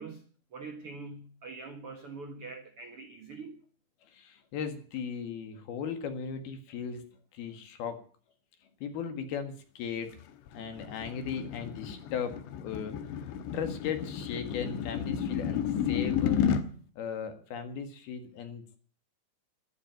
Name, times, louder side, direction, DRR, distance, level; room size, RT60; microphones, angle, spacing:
voice 1, 0.0-3.6, right 4 dB, 80° right, 6 dB, 1.2 m, -44 dB
voice 2, 4.1-7.0 7.3-8.0 8.8-10.2 10.5-16.4 17.0-18.8, left 7 dB, 65° left, 8 dB, 3.4 m, -37 dB
sound 1, 10.2-16.6, left 8 dB, 80° left, 3.4 m, -32 dB
13.0 x 11.5 x 9.2 m, 0.43 s
omnidirectional pair, 5.2 m